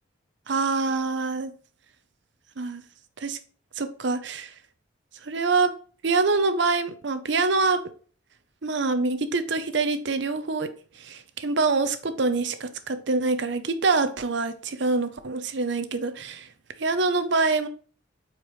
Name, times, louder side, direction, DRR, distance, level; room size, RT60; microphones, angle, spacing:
voice 1, 0.5-1.5 2.6-2.8 3.2-3.4 3.8-4.5 5.2-5.7 6.0-7.8 8.6-10.7 11.0-16.5 16.8-17.7, right 3 dB, 60° right, 0.7 m, -25 dB
8.2 x 4.5 x 3.1 m
head